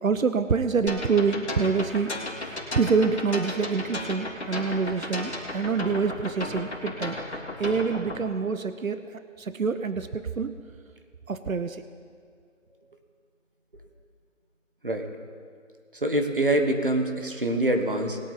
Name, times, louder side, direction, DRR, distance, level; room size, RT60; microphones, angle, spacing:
voice 1, 0.0-2.1 2.4-7.2 7.6-10.6 11.3-11.8, right 5 dB, 90° right, 11 dB, 0.8 m, -26 dB
sound 1, 0.9-8.2, left 1 dB, 55° left, 3.2 m, -34 dB
voice 2, 16.0-18.2, right 1 dB, 40° right, 5 dB, 1.3 m, -25 dB
20.5 x 8.5 x 4.0 m, 2.2 s
figure-of-eight pair, 180°, 40 cm